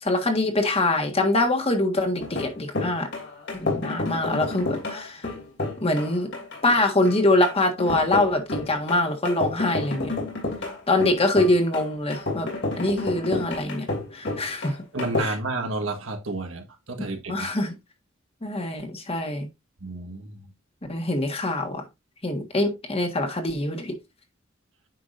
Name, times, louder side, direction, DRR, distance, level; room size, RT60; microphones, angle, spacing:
voice 1, 0.0-3.1 3.5-5.2 5.8-6.3 6.6-10.1 10.9-12.5 12.8-13.9 14.1-14.8 15.2-15.3 17.3-17.7 18.4-19.5 20.9-21.8 22.2-24.0, left 2 dB, 30° left, 1.6 m, -24 dB
sound 1, 2.2-15.2, left 2 dB, 60° left, 2.8 m, -30 dB
voice 2, 14.9-17.3 19.8-20.4, right 2 dB, 80° right, 1.5 m, -30 dB
9.4 x 5.9 x 2.6 m
head